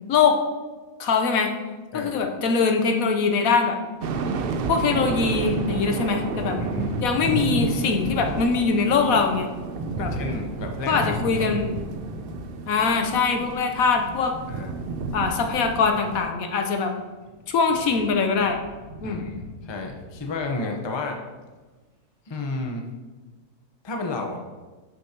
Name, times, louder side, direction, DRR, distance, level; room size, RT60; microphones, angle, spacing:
voice 1, 0.1-0.4 1.0-1.5 1.9-3.8 4.7-6.6 7.0-9.5 10.0-10.1 10.9-11.7 12.7-14.3 15.1-16.9 17.5-18.6 19.0-19.2, left 5 dB, 70° left, 5 dB, 1.2 m, -22 dB
sound 1, 4.0-16.3, right 4 dB, 75° right, 0.5 m, -31 dB
Thunder, 6.3-20.8, equal, 40° right, 2.7 m, -36 dB
voice 2, 6.6-7.0 10.0-11.5 14.5-14.7 19.0-21.2 22.3-22.8 23.8-24.4, left 2 dB, 25° left, 2 dB, 0.7 m, -32 dB
11.5 x 6.4 x 2.9 m, 1.3 s
omnidirectional pair, 1.6 m